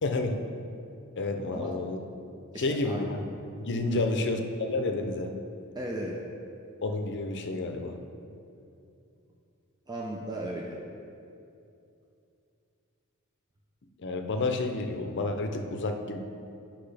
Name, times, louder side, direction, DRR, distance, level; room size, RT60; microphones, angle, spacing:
voice 1, 0.0-0.4 1.2-2.0 2.6-3.2 3.6-5.3 6.8-8.0 14.0-16.2, left 2 dB, 55° left, 5 dB, 0.6 m, -30 dB
voice 2, 2.5-3.0 3.9-4.1 5.7-6.2 9.9-10.8, right 1 dB, 20° right, -2 dB, 0.6 m, -36 dB
10.0 x 5.9 x 3.4 m, 2.6 s
head